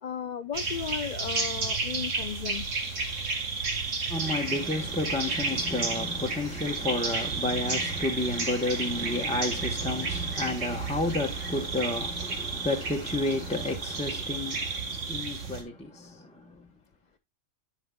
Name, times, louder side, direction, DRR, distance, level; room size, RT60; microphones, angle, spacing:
voice 1, 0.0-2.7, left 7 dB, 80° left, 0.4 m, -35 dB
sound 1, 0.5-15.6, right 4 dB, 75° right, 2.1 m, -32 dB
voice 2, 4.1-16.7, left 2 dB, 5° left, 0.9 m, -31 dB
12.0 x 5.4 x 2.2 m
omnidirectional pair, 1.3 m